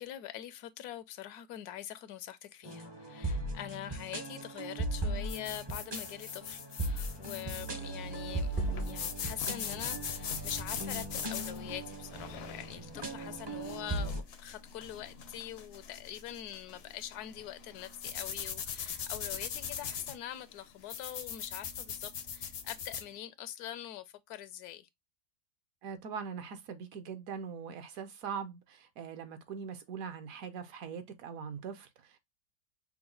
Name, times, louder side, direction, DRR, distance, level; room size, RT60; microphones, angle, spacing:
voice 1, 0.0-8.5 8.9-24.9, left 12 dB, 75° left, 1.1 m, -44 dB
sound 1, 2.6-14.2, right 1 dB, 35° right, 0.4 m, -38 dB
sound 2, 5.3-23.1, left 7 dB, 60° left, 0.6 m, -41 dB
sound 3, 7.5-19.0, right 3 dB, 85° right, 1.2 m, -50 dB
voice 2, 25.8-32.2, right 6 dB, 65° right, 1.1 m, -42 dB
5.8 x 2.2 x 3.7 m
omnidirectional pair, 1.7 m